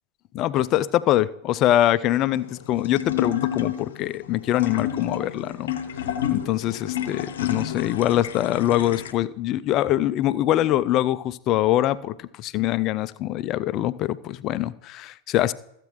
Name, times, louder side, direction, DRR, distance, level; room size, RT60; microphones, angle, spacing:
voice 1, 0.3-5.7 6.3-15.5, left 13 dB, 35° left, 17 dB, 0.4 m, -23 dB
sound 1, 2.1-9.1, left 10 dB, 65° left, 0.8 m, -30 dB
14.5 x 8.3 x 3.0 m, 0.79 s
figure-of-eight pair, 90°, 0 cm